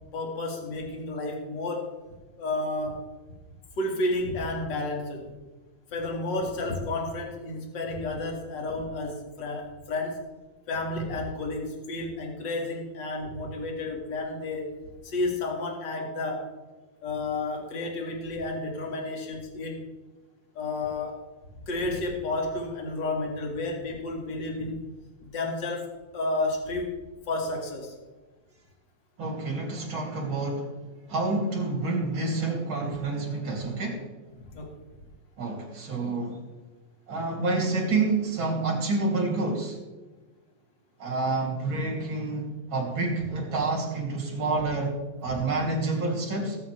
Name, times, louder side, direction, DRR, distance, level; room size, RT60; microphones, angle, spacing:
voice 1, 0.1-2.0 2.4-3.1 3.8-5.3 5.9-10.2 10.7-14.7 15.0-16.5 17.0-19.8 20.5-21.2 21.6-24.8 25.2-27.9 34.5-34.7 45.3-45.4, left 2 dB, 35° left, 1 dB, 2.3 m, -31 dB
voice 2, 29.2-30.7 31.1-34.0 35.4-36.4 37.1-39.8 41.0-44.9 45.2-46.6, right 3 dB, 35° right, 0 dB, 3.3 m, -28 dB
19.0 x 8.9 x 3.4 m, 1.2 s
omnidirectional pair, 4.0 m